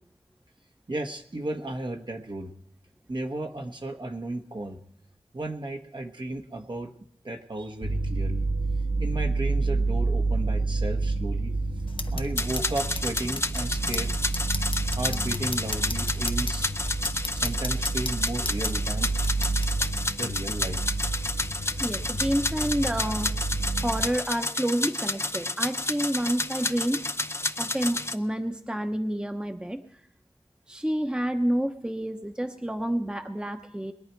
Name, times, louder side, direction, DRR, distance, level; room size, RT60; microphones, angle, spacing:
voice 1, 0.9-2.5 3.1-4.8 5.3-6.9 7.2-8.5 9.0-11.5 12.1-14.1 15.0-16.7 17.3-19.1 20.2-20.9, right 2 dB, 55° right, 3 dB, 1.2 m, -34 dB
sound 1, 7.8-24.1, right 3 dB, 70° right, 1.9 m, -29 dB
sound 2, 11.9-19.9, left 3 dB, 60° left, 0.9 m, -37 dB
sound 3, 12.4-28.1, left 2 dB, 25° left, 0.5 m, -31 dB
voice 2, 21.8-23.3 23.8-27.0 27.6-29.8 30.7-33.9, right 1 dB, 10° right, 6 dB, 0.9 m, -29 dB
22.0 x 10.5 x 4.6 m, 0.72 s
wide cardioid pair, 75°, 10 cm